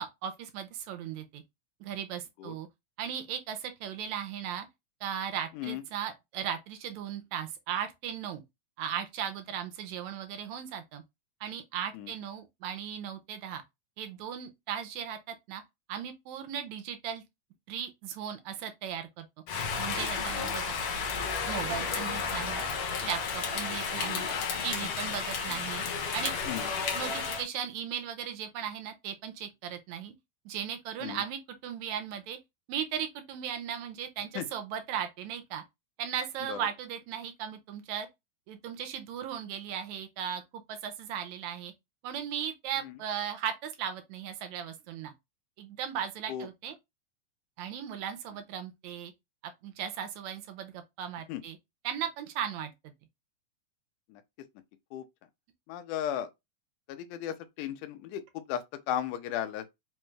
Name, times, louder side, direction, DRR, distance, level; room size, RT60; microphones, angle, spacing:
voice 1, 0.0-1.4 1.8-2.7 3.0-4.7 5.0-8.4 8.8-11.0 11.4-13.6 14.0-15.6 15.9-17.2 17.7-19.3 19.8-20.8 21.5-22.6 23.0-24.3 24.6-25.8 26.1-26.3 26.9-30.1 30.5-32.4 32.7-35.6 36.0-38.1 38.5-40.4 40.7-41.7 42.0-45.1 45.6-46.8 47.6-49.1 49.6-51.6 51.8-52.7, right 9 dB, 80° right, 1.8 m, -37 dB
Rain, 19.5-27.5, left 5 dB, 65° left, 1.6 m, -32 dB
voice 2, 55.7-56.3 56.9-59.7, left 10 dB, 85° left, 2.1 m, -35 dB
5.0 x 2.3 x 3.1 m
omnidirectional pair, 3.5 m